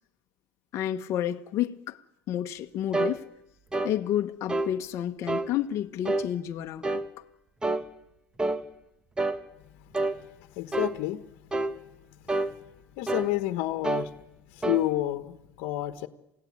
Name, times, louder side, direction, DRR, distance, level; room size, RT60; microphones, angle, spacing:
voice 1, 0.7-3.3 3.8-7.2, left 11 dB, 50° left, 1.2 m, -31 dB
sound 1, 2.9-3.2 3.7-4.0 4.5-4.7 5.3-5.5 6.1-6.3 6.8-7.1 7.6-7.9 8.4-8.6 9.2-9.4 9.9-10.2 10.7-11.0 11.5-11.8 12.3-12.5 13.1-13.3 13.8-14.1 14.6-14.8, right 2 dB, 15° right, 1.3 m, -28 dB
voice 2, 10.5-11.3 13.0-14.1 14.5-16.1, left 15 dB, 70° left, 1.3 m, -29 dB
28.0 x 16.5 x 9.7 m
supercardioid pair, 120°, 6 cm